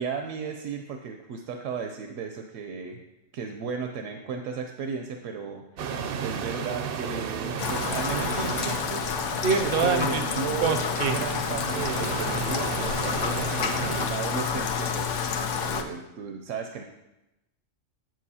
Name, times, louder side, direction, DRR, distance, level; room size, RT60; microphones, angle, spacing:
voice 1, 0.0-3.0 3.3-9.0 9.6-15.3 15.6-16.8, right 6 dB, 80° right, 5 dB, 0.9 m, -35 dB
sound 1, 5.8-14.1, right 6 dB, 60° right, 0.6 m, -30 dB
Rain, 7.6-15.8, left 6 dB, 75° left, 0.9 m, -29 dB
7.6 x 7.5 x 2.8 m, 0.94 s
omnidirectional pair, 1.3 m